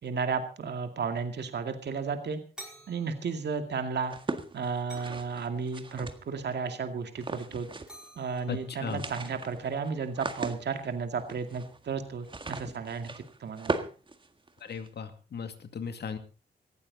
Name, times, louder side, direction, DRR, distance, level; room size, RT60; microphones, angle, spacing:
voice 1, 0.0-2.4 2.9-4.1 4.5-7.7 8.2-13.1 13.4-13.9, right 5 dB, 65° right, 7 dB, 2.3 m, -33 dB
sound 1, 2.6-3.8 4.1-4.4 4.9-5.4 7.2-7.4 7.9-9.1, right 1 dB, 5° right, 5.1 m, -50 dB
sound 2, 4.0-6.5 7.1-8.1 8.3-8.4 8.7-14.9, right 3 dB, 25° right, 1.8 m, -38 dB
voice 2, 8.5-9.0 14.6-16.2, left 6 dB, 65° left, 8 dB, 2.3 m, -37 dB
18.5 x 14.5 x 4.0 m, 0.35 s
wide cardioid pair, 115°, 19 cm